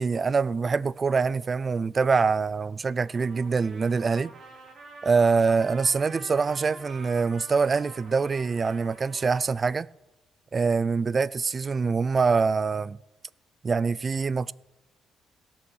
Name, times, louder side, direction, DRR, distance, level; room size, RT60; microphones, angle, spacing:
voice 1, 0.0-4.3 5.0-9.9 10.5-13.0 13.6-14.5, right 5 dB, 35° right, 0.3 m, -24 dB
Trumpet, 3.0-9.6, right 3 dB, 55° right, 3.4 m, -47 dB
17.5 x 7.0 x 6.3 m
cardioid pair, 90°, 0 cm